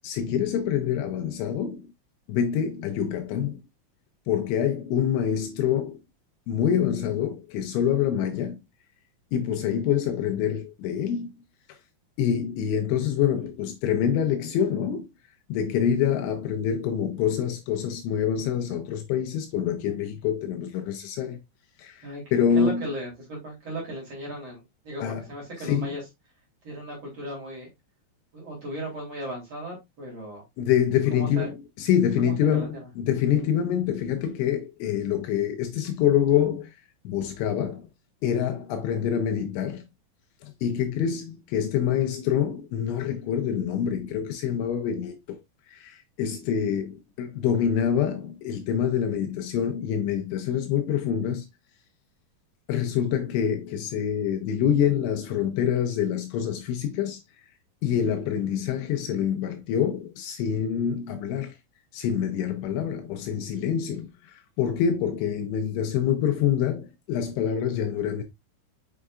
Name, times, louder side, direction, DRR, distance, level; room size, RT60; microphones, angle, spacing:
voice 1, 0.0-1.9 2.3-3.6 4.3-6.0 6.5-8.6 9.3-11.4 11.7-11.8 12.2-15.1 15.5-21.4 21.8-22.9 25.0-25.2 25.6-26.0 30.6-36.8 37.0-37.9 38.2-39.9 40.4-45.4 45.7-51.5 52.7-57.2 57.8-61.6 61.9-68.2, left 9 dB, 80° left, 2.9 m, -26 dB
voice 2, 22.5-26.0 26.6-27.7 28.3-30.4 31.1-31.5 32.2-32.9, right 1 dB, 40° right, 3.0 m, -36 dB
6.7 x 6.3 x 2.4 m
omnidirectional pair, 5.8 m